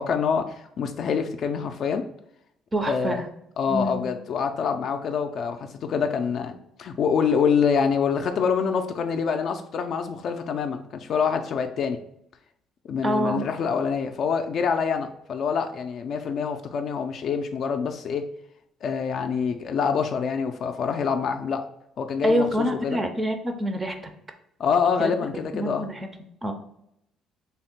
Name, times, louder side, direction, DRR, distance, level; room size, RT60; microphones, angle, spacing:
voice 1, 0.0-2.0 2.9-3.2 3.6-12.0 12.9-18.3 18.8-21.7 22.0-23.0 24.6-25.9, left 6 dB, 50° left, 6 dB, 0.3 m, -26 dB
voice 2, 2.7-3.2 3.7-4.1 13.0-13.5 22.2-24.1 25.0-25.1 25.5-26.5, right 1 dB, 20° right, 5 dB, 0.4 m, -26 dB
3.4 x 2.1 x 4.3 m, 0.76 s
cardioid pair, 125°, 0 cm